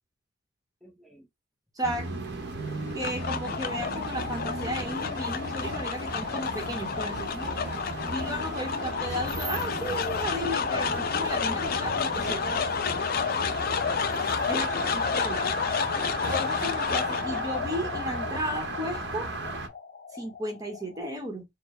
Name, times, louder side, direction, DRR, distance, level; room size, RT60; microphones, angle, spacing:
voice 1, 0.8-1.3 7.4-8.2 12.2-12.7 13.8-15.5, right 2 dB, ahead, 0.6 m, -46 dB
voice 2, 1.7-2.1 2.9-7.5 8.1-12.4 12.9-13.0 14.5-14.7 14.9-15.4 16.3-19.3 20.1-21.4, equal, 20° right, 1.0 m, -34 dB
sound 1, 1.8-19.7, right 3 dB, 60° right, 0.9 m, -36 dB
sound 2, 2.7-21.0, left 6 dB, 50° left, 0.4 m, -31 dB
4.5 x 2.1 x 3.1 m
head